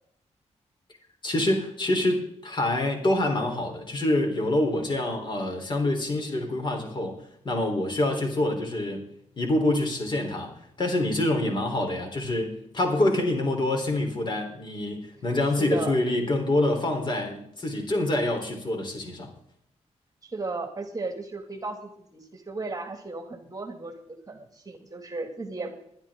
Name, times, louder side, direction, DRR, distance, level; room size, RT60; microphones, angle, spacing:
voice 1, 1.2-7.2 7.4-9.0 9.4-10.5 10.8-19.3, left 1 dB, 40° left, 3 dB, 3.6 m, -26 dB
voice 2, 15.6-16.0 20.2-25.8, right 3 dB, 30° right, 5 dB, 2.1 m, -35 dB
21.5 x 11.5 x 3.7 m, 0.72 s
wide cardioid pair, 120°, 12 cm